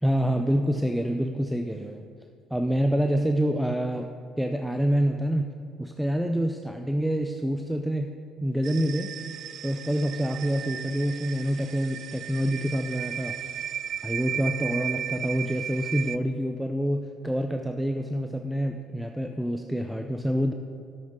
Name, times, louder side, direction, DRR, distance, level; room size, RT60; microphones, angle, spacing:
voice 1, 0.0-2.0 2.5-9.1 9.6-13.4 14.0-20.5, equal, 5° right, 5 dB, 0.6 m, -27 dB
sound 1, 8.6-16.2, right 9 dB, 60° right, 0.3 m, -35 dB
11.0 x 7.8 x 5.3 m, 2.3 s
supercardioid pair, 70°, 0 cm